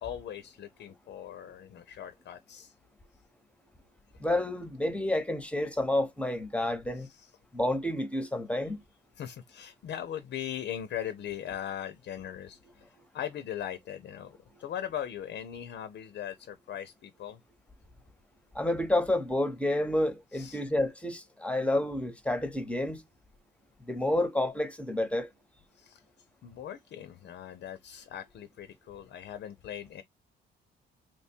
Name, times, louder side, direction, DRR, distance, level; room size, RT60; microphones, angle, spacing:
voice 1, 0.0-2.7 7.0-7.3 9.2-17.4 20.3-20.6 25.7-26.0 26.4-30.0, left 10 dB, 60° left, 0.5 m, -40 dB
voice 2, 4.2-7.1 7.5-8.8 18.5-23.0 23.9-25.3, left 1 dB, 5° left, 0.7 m, -29 dB
3.0 x 2.2 x 4.2 m
cardioid pair, 90°, 20 cm